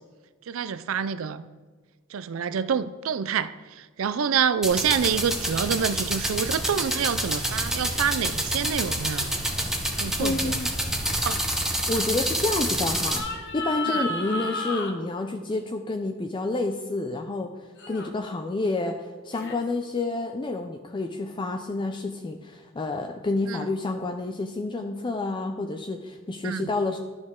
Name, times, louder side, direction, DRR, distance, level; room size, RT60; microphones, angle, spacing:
voice 1, 0.5-1.5 2.1-9.3 10.0-10.6 11.2-11.4 13.9-14.0 23.5-23.6 26.4-26.7, right 7 dB, 70° right, 14 dB, 0.4 m, -27 dB
sound 1, 4.6-13.2, right 1 dB, ahead, 0.9 m, -28 dB
sound 2, 9.2-9.4 13.0-14.9 17.8-18.1 19.3-19.6, left 2 dB, 55° left, 0.9 m, -32 dB
voice 2, 10.2-10.7 11.9-13.2 13.5-27.0, left 2 dB, 25° left, 4 dB, 0.4 m, -29 dB
12.0 x 6.2 x 3.7 m, 1.4 s
head